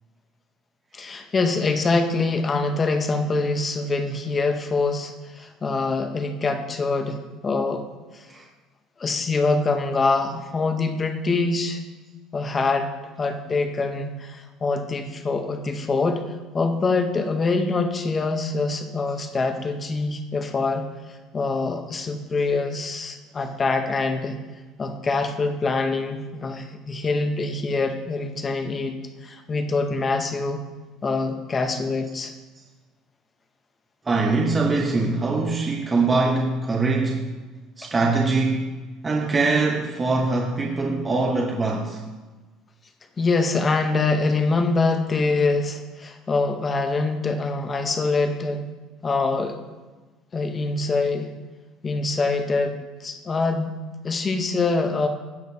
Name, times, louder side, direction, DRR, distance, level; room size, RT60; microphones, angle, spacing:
voice 1, 0.9-7.8 8.1-8.2 9.0-11.8 12.3-12.9 13.2-16.2 16.5-20.8 21.3-24.4 24.8-29.0 29.2-30.6 31.0-32.3 43.2-48.6 49.0-49.6 50.3-51.3 51.8-55.1, left 3 dB, 20° left, 6 dB, 0.8 m, -24 dB
voice 2, 34.0-37.3 37.8-38.7 39.0-42.0, right 3 dB, 20° right, -1 dB, 0.8 m, -23 dB
16.0 x 6.6 x 2.7 m, 1.3 s
cardioid pair, 160°, 0 cm